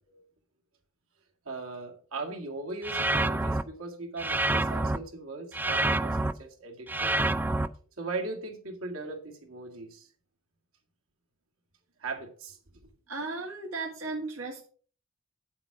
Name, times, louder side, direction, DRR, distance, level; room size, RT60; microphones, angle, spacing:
voice 1, 1.5-7.1 8.0-10.1 12.0-12.6, right 3 dB, 90° right, 2.0 m, -39 dB
sound 1, 2.8-3.6 4.2-5.0 5.5-6.3 6.9-7.7, right 2 dB, 10° right, 0.3 m, -27 dB
voice 2, 13.1-14.7, right 3 dB, 75° right, 1.7 m, -35 dB
8.7 x 7.6 x 4.8 m
head